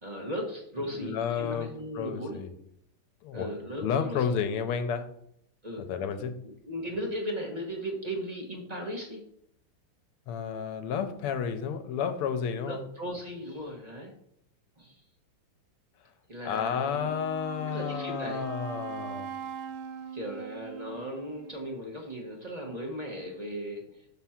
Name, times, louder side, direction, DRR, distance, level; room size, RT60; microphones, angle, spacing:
voice 1, 0.0-2.4 3.3-4.3 5.6-5.8 6.4-9.2 12.7-14.1 14.8-15.0 16.3-17.1 17.7-18.4 20.1-24.1, equal, 30° right, 0 dB, 0.7 m, -37 dB
voice 2, 0.8-2.5 3.2-3.5 3.8-5.1 5.9-6.4 10.3-12.8 16.4-19.3, left 7 dB, 85° left, 8 dB, 1.7 m, -31 dB
Wind instrument woodwind instrument, 16.9-21.8, right 7 dB, 75° right, 1.4 m, -41 dB
6.0 x 4.1 x 5.7 m, 0.72 s
omnidirectional pair, 2.4 m